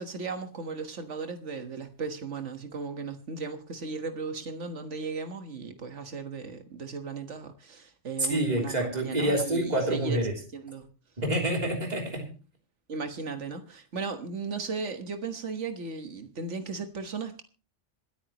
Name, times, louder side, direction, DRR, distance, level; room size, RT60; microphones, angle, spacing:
voice 1, 0.0-10.2 10.5-10.9 12.9-17.4, right 4 dB, 85° right, 1.8 m, -36 dB
voice 2, 8.3-10.3 11.2-12.3, right 1 dB, 35° right, 3.3 m, -27 dB
26.5 x 9.4 x 3.0 m
omnidirectional pair, 1.2 m